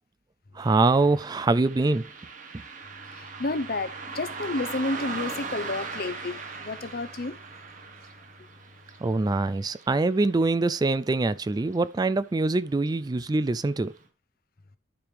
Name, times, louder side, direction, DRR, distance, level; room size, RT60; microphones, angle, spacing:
voice 1, 0.6-2.1 9.0-13.9, right 3 dB, 20° right, 0.3 m, -24 dB
Car passing by, 0.6-11.4 11.7-11.8 12.8-12.9 13.4-13.5 14.0-14.1, right 4 dB, 45° right, 1.3 m, -40 dB
voice 2, 3.0-7.4, left 2 dB, 55° left, 0.8 m, -31 dB
12.0 x 4.9 x 3.4 m
head